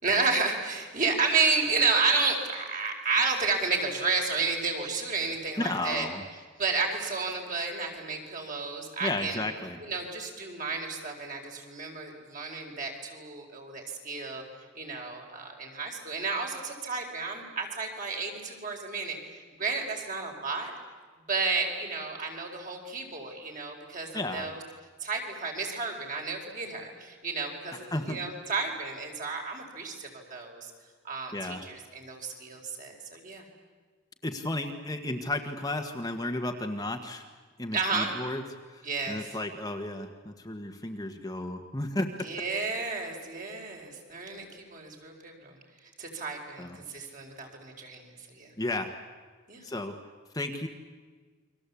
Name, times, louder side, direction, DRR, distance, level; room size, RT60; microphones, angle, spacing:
voice 1, 0.0-6.1 6.6-9.4 9.8-14.4 14.7-19.2 19.6-20.7 21.3-24.6 25.0-30.7 31.0-33.4 37.7-38.1 38.8-39.3 42.2-45.6 46.0-48.5 49.5-49.6, right 4 dB, 40° right, 2 dB, 4.9 m, -31 dB
voice 2, 5.6-6.2 9.0-9.8 24.1-24.5 27.9-28.2 31.3-31.6 34.2-37.3 37.6-38.4 38.7-42.1 46.6-46.8 48.6-48.9 49.6-50.0 50.3-50.7, left 2 dB, 20° left, 4 dB, 1.5 m, -33 dB
29.5 x 23.5 x 8.5 m, 1.5 s
head